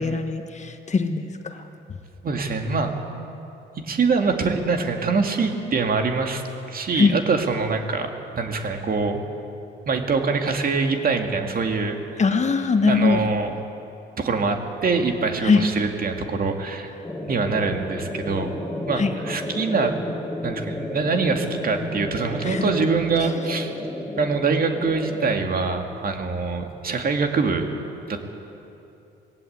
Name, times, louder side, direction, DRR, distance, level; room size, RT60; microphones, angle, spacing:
voice 1, 0.0-1.6 6.9-7.2 12.2-13.2 15.4-15.7 19.0-19.1 22.4-22.6, left 4 dB, 35° left, 7 dB, 1.5 m, -21 dB
voice 2, 2.2-2.9 3.8-6.4 6.7-9.2 9.9-12.2 12.9-13.5 14.2-16.9 17.3-18.6 18.9-20.0 20.4-23.7 24.2-27.7 28.1-28.2, right 4 dB, 45° right, 4 dB, 2.3 m, -24 dB
sound 1, 17.0-25.3, left 1 dB, 10° left, 1.8 m, -32 dB
20.0 x 17.5 x 8.1 m, 2.8 s
cardioid pair, 90°, 20 cm